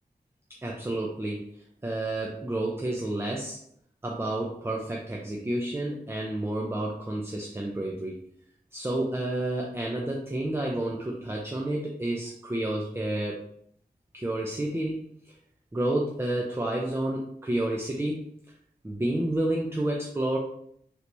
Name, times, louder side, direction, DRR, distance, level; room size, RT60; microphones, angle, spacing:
voice 1, 0.6-1.5 1.8-3.6 4.0-8.2 8.7-13.4 14.1-15.0 15.7-18.2 18.8-20.4, right 1 dB, 15° right, -1 dB, 0.4 m, -30 dB
3.2 x 2.9 x 2.6 m, 0.68 s
wide cardioid pair, 80°, 17 cm